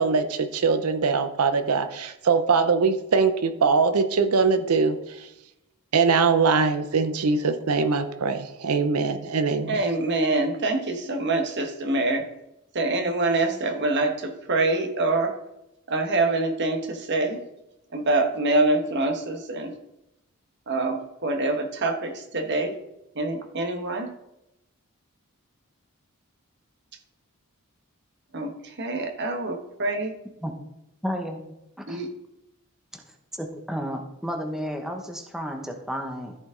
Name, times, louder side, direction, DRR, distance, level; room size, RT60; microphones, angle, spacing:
voice 1, 0.0-5.3 5.9-9.9, right 4 dB, 85° right, 9 dB, 0.7 m, -22 dB
voice 2, 9.7-12.2 12.7-15.3 15.9-17.4 17.9-19.7 20.7-22.7 23.2-24.1 28.3-28.5 28.8-30.1 31.9-32.1, right 2 dB, 55° right, 5 dB, 1.3 m, -25 dB
voice 3, 31.0-31.4 31.8-32.0 32.9-33.0 33.4-36.4, equal, ahead, 3 dB, 0.9 m, -32 dB
14.0 x 5.1 x 3.8 m, 0.88 s
head